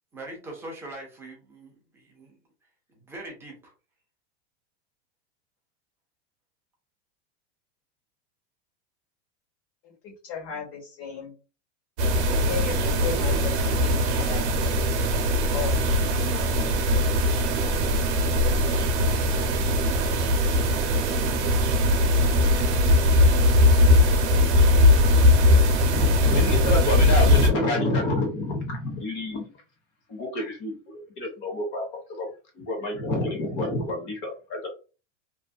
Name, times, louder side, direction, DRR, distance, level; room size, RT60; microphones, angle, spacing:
voice 1, 0.1-2.4 2.9-3.7, right 1 dB, 5° right, -1 dB, 0.4 m, -42 dB
voice 2, 10.0-11.3 12.4-14.5 15.5-15.9, left 7 dB, 55° left, 0 dB, 1.4 m, -35 dB
sound 1, 12.0-27.5, left 1 dB, 65° right, 0.7 m, -20 dB
voice 3, 25.8-29.5 30.1-30.8 31.2-31.8 32.1-32.3 32.5-34.6, left 1 dB, 30° left, 2 dB, 0.8 m, -28 dB
2.6 x 2.3 x 2.3 m, 0.34 s
supercardioid pair, 155°, 36 cm